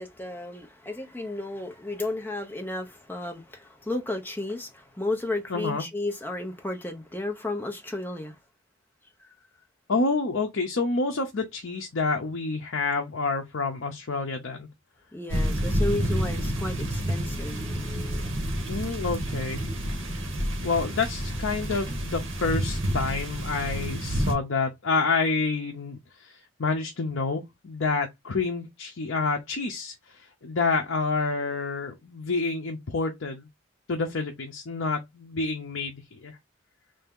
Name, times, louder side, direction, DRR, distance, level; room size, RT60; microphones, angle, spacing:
voice 1, 0.0-8.4 15.1-18.3, left 2 dB, 10° left, 0.7 m, -33 dB
voice 2, 5.5-5.8 9.9-14.7 18.7-19.6 20.6-33.5 33.9-36.4, left 4 dB, 70° left, 0.7 m, -28 dB
sound 1, 15.3-24.3, equal, 70° right, 1.4 m, -29 dB
3.4 x 2.7 x 3.6 m
head